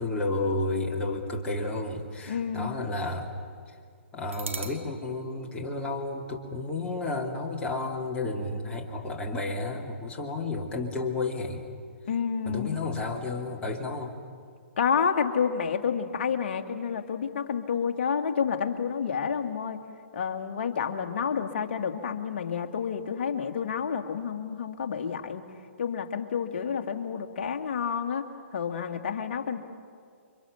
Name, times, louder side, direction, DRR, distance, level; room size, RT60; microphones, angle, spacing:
voice 1, 0.0-3.3 4.1-11.6 12.5-14.1, left 2 dB, 15° left, -1 dB, 3.1 m, -31 dB
voice 2, 2.3-2.7 12.1-12.8 14.8-19.8 20.1-25.4 25.8-29.6, left 7 dB, 50° left, 5 dB, 2.2 m, -29 dB
sound 1, 4.3-6.5, right 4 dB, 75° right, 2.3 m, -43 dB
30.0 x 25.0 x 7.0 m, 2.1 s
figure-of-eight pair, 125°, 7 cm